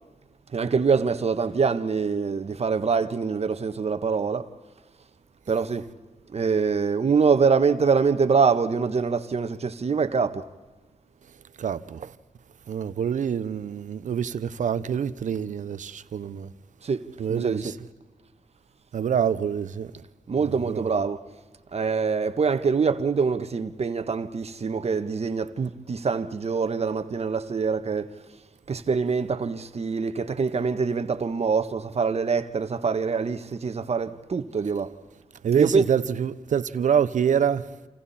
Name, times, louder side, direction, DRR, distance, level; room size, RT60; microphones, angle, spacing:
voice 1, 0.5-4.5 5.5-5.9 6.3-10.4 16.8-17.6 20.3-21.2 21.7-28.1 28.7-34.9 35.6-35.8, right 5 dB, 55° right, 1.5 m, -24 dB
voice 2, 11.6-12.1 12.7-16.5 17.2-17.7 18.9-19.9 20.4-20.9 35.4-37.7, right 8 dB, 75° right, 1.0 m, -26 dB
28.5 x 27.5 x 4.4 m
cardioid pair, 55°, 13 cm